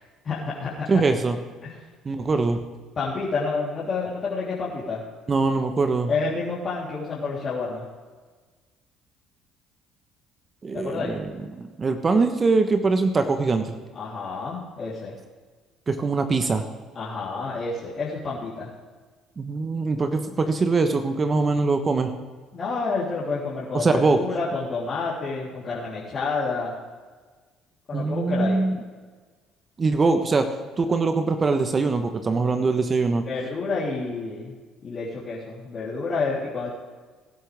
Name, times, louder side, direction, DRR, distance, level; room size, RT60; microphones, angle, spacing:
voice 1, 0.2-0.9 1.6-1.7 3.0-5.0 6.1-7.8 10.7-11.2 13.9-15.2 17.0-18.7 22.5-26.7 27.9-28.6 33.2-34.5 34.8-36.7, left 4 dB, 45° left, -8 dB, 3.6 m, -29 dB
voice 2, 0.9-1.4 2.0-2.6 5.3-6.1 10.6-11.3 11.6-13.7 15.9-16.6 19.4-22.1 23.7-24.2 27.9-28.8 29.8-30.4 30.8-33.2, right 3 dB, 35° right, 7 dB, 1.2 m, -22 dB
19.5 x 11.5 x 3.6 m, 1.4 s
hypercardioid pair, 65°, 0 cm